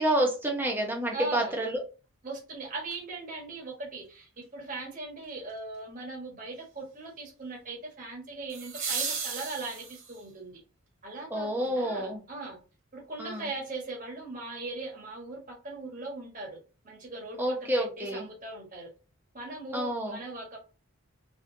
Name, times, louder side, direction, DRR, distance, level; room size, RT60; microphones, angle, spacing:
voice 1, 0.0-1.8 11.3-12.2 13.2-13.5 17.4-18.2 19.7-20.2, right 1 dB, 10° right, 0 dB, 1.1 m, -29 dB
voice 2, 1.1-1.5 2.2-10.6 11.0-12.6 12.9-16.6 16.8-18.9 19.3-20.6, right 3 dB, 35° right, 0 dB, 1.4 m, -39 dB
sound 1, 2.9-3.0 8.5-10.3 12.5-12.6, right 5 dB, 65° right, 1.9 m, -35 dB
3.7 x 3.5 x 3.9 m, 0.34 s
head